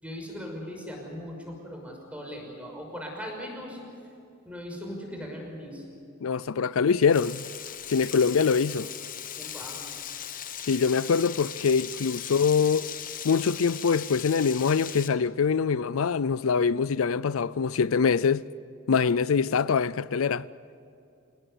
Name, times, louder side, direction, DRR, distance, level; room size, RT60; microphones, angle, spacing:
voice 1, 0.0-3.8 4.4-5.8 9.4-9.9, equal, 5° right, 5.8 m, -39 dB
voice 2, 6.2-7.4 7.9-8.9 10.6-12.9 13.2-18.4 18.9-20.4, left 5 dB, 80° left, 0.5 m, -24 dB
Frying (food), 7.1-15.1, left 9 dB, 40° left, 1.1 m, -38 dB
29.0 x 18.0 x 8.3 m
head